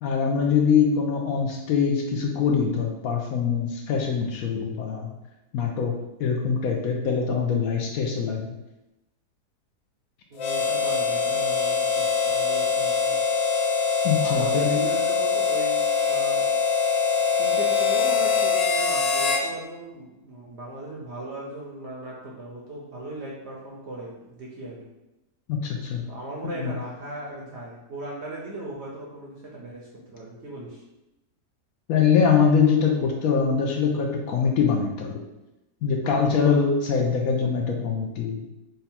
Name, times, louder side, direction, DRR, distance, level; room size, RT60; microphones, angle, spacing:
voice 1, 0.0-5.2 5.5-8.5 14.0-14.8 25.5-26.1 26.5-26.7 31.9-35.2 35.8-38.4, left 6 dB, 70° left, 1 dB, 0.9 m, -23 dB
voice 2, 10.3-13.2 14.2-16.5 17.3-24.8 26.1-30.8, right 1 dB, 60° right, -4 dB, 0.7 m, -38 dB
Harmonica, 10.4-19.5, left 5 dB, 85° left, 0.5 m, -23 dB
3.8 x 2.2 x 4.2 m, 0.96 s
omnidirectional pair, 1.7 m